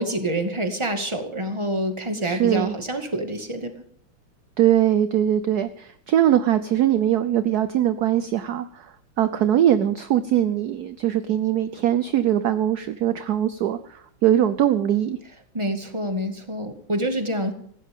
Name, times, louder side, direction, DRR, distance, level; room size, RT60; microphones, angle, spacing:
voice 1, 0.0-3.8 15.5-17.5, right 1 dB, 15° right, 5 dB, 2.0 m, -27 dB
voice 2, 2.2-2.7 4.6-15.2, right 11 dB, 60° right, 12 dB, 1.1 m, -21 dB
20.0 x 16.0 x 3.7 m, 0.64 s
omnidirectional pair, 2.2 m